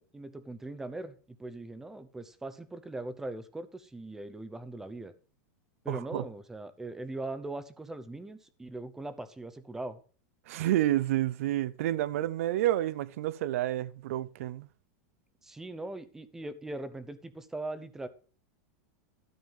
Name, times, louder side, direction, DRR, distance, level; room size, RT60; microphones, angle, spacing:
voice 1, 0.0-5.1 5.8-10.0 15.4-18.1, right 2 dB, 5° right, 0.7 m, -40 dB
voice 2, 5.9-6.2 10.5-14.7, right 14 dB, 55° right, 0.6 m, -29 dB
12.5 x 5.4 x 7.1 m
supercardioid pair, 175°, 9 cm